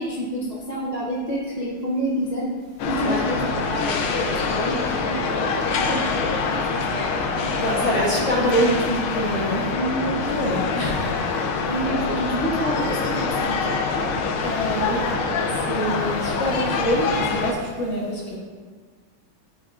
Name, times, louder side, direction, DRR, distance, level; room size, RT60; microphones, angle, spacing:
voice 1, 0.0-2.5 2.9-6.2 6.5-8.1 9.5-10.3 11.7-14.0, right 1 dB, 60° right, -7 dB, 0.4 m, -29 dB
sound 1, 2.8-17.5, left 4 dB, 85° left, 1.5 m, -25 dB
voice 2, 7.6-9.6 10.2-11.1 14.4-15.0 15.7-18.4, equal, 45° left, -4 dB, 1.1 m, -25 dB
10.0 x 4.4 x 2.4 m, 1.5 s
omnidirectional pair, 2.3 m